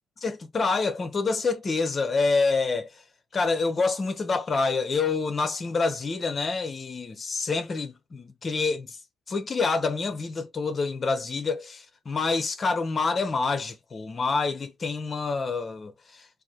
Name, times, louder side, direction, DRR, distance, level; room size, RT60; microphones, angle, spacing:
voice 1, 0.2-2.9 3.3-9.0 9.3-15.9, left 4 dB, 30° left, 0.9 m, -27 dB
3.9 x 2.6 x 3.0 m
cardioid pair, 125°, 0 cm